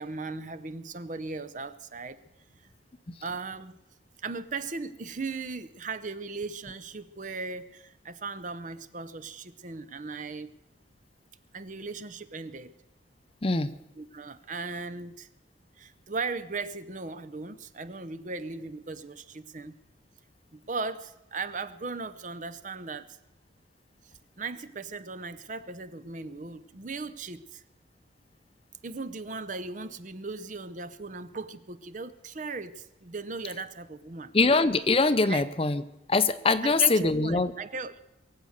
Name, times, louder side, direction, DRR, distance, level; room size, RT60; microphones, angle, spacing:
voice 1, 0.0-2.2 2.6-2.7 3.2-3.7 4.2-10.5 11.5-12.7 14.0-15.3 15.8-19.8 20.5-23.2 24.0-27.6 28.8-34.3 35.2-35.5 36.6-38.0, right 4 dB, 40° right, 13 dB, 0.7 m, -37 dB
voice 2, 13.4-13.7 34.3-35.8 36.1-37.5, left 3 dB, 30° left, 12 dB, 0.6 m, -23 dB
23.0 x 8.0 x 6.5 m, 0.93 s
head